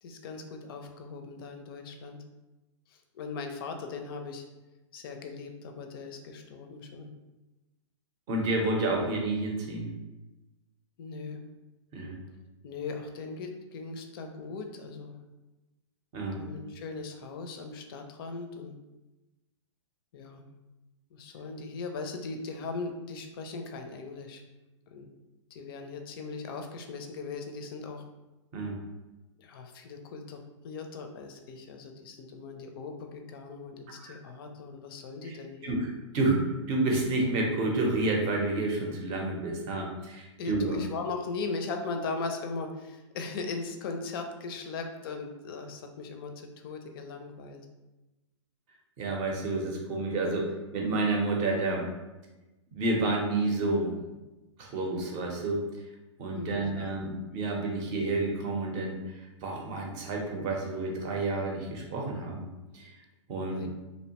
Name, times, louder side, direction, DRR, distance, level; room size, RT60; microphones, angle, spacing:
voice 1, 0.0-2.2 2.9-4.4 4.9-7.1 11.0-11.4 12.6-15.1 16.4-18.7 20.1-20.5 21.1-24.4 24.9-25.1 25.5-28.0 29.4-35.8 40.4-47.6 56.3-56.9 63.5-63.7, left 4 dB, 50° left, 4 dB, 0.4 m, -39 dB
voice 2, 8.3-9.9 11.9-12.1 16.1-16.4 28.5-28.7 34.0-34.1 35.2-35.4 35.6-40.8 49.0-51.9 52.7-53.9 54.6-55.6 56.2-59.0 59.4-62.4 62.7-62.9 63.3-63.6, right 2 dB, 35° right, 0 dB, 0.6 m, -29 dB
2.7 x 2.1 x 2.8 m, 1.1 s
hypercardioid pair, 135°, 16 cm